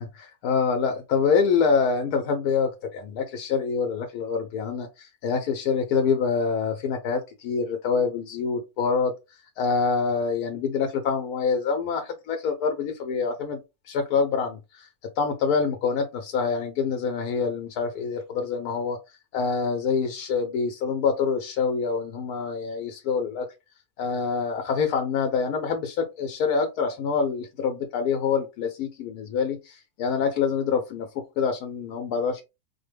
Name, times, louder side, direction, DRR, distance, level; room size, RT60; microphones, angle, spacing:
voice 1, 0.2-9.1 9.6-13.6 13.8-14.9 15.2-19.0 19.3-23.5 24.0-31.1 31.4-32.4, left 5 dB, 90° left, 5 dB, 1.2 m, -26 dB
4.5 x 2.1 x 3.3 m, 0.24 s
omnidirectional pair, 1.6 m